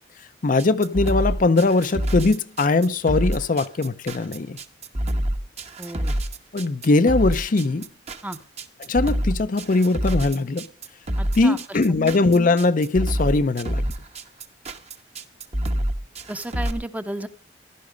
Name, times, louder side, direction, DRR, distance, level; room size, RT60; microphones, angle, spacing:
voice 1, 0.4-4.6 6.5-7.9 8.8-10.7 11.3-13.8, left 3 dB, 45° left, 0.5 m, -20 dB
sound 1, 0.6-16.7, right 1 dB, 35° right, 1.1 m, -26 dB
voice 2, 5.8-6.1 8.2-8.4 11.2-12.2 16.3-17.3, right 1 dB, 10° right, 0.8 m, -33 dB
15.5 x 12.0 x 5.1 m
head